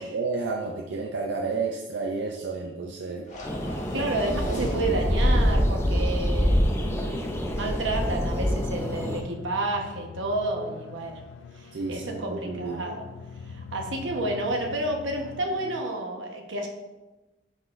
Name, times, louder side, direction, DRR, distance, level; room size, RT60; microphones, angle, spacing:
voice 1, 0.0-3.3 4.0-4.1 4.5-4.8 11.7-12.9, right 4 dB, 70° right, 1 dB, 0.5 m, -31 dB
sound 1, 3.2-7.7, left 1 dB, 40° left, 1.1 m, -37 dB
sound 2, 3.4-9.2, equal, 15° left, 0.5 m, -25 dB
voice 2, 3.9-11.1 11.6-13.0 13.5-16.7, right 2 dB, 85° right, 2 dB, 1.0 m, -30 dB
sound 3, 7.3-15.8, left 5 dB, 85° left, 0.3 m, -43 dB
9.6 x 4.1 x 2.5 m, 1.1 s
head